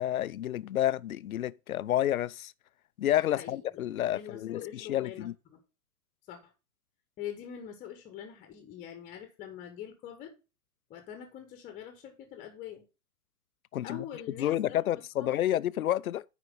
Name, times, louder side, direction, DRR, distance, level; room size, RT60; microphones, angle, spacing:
voice 1, 0.0-2.5 3.0-5.3 13.7-14.0 14.4-16.2, left 12 dB, 65° left, 0.5 m, -30 dB
voice 2, 4.0-5.6 6.3-6.5 7.2-10.3 10.9-12.8 13.8-15.3, left 9 dB, 15° left, 1.1 m, -44 dB
9.3 x 4.9 x 5.0 m
figure-of-eight pair, 115°, 47 cm